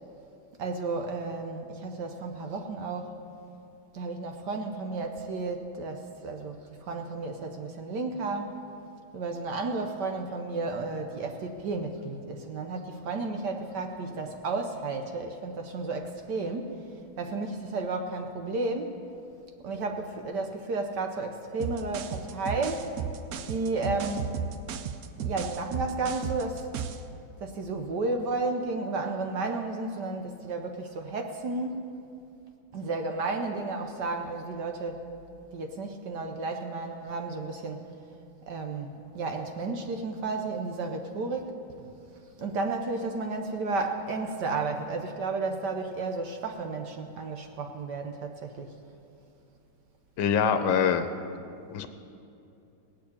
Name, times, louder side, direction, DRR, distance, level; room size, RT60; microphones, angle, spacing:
voice 1, 0.6-3.2 3.9-8.5 9.1-16.8 17.2-19.0 19.6-22.9 23.5-24.4 25.2-26.7 27.4-32.1 32.7-35.0 35.5-37.9 38.5-41.9 42.4-48.7, right 3 dB, 60° right, 5 dB, 1.3 m, -32 dB
sound 1, 21.6-27.1, right 7 dB, 80° right, 0.8 m, -34 dB
voice 2, 50.2-51.1 51.7-51.9, left 7 dB, 75° left, 7 dB, 1.4 m, -24 dB
18.0 x 6.5 x 8.6 m, 2.6 s
omnidirectional pair, 2.3 m